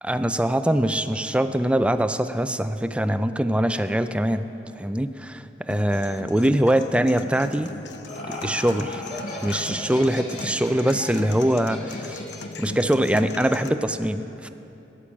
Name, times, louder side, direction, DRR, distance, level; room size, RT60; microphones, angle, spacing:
voice 1, 0.0-7.7 8.3-9.0 9.4-12.2 12.6-14.5, right 1 dB, 5° right, 10 dB, 0.4 m, -23 dB
sound 1, 5.7-13.7, left 3 dB, 85° left, 0.8 m, -38 dB
Laughter, 7.6-12.8, left 1 dB, 45° left, 2.4 m, -37 dB
17.0 x 10.5 x 7.3 m, 3.0 s
head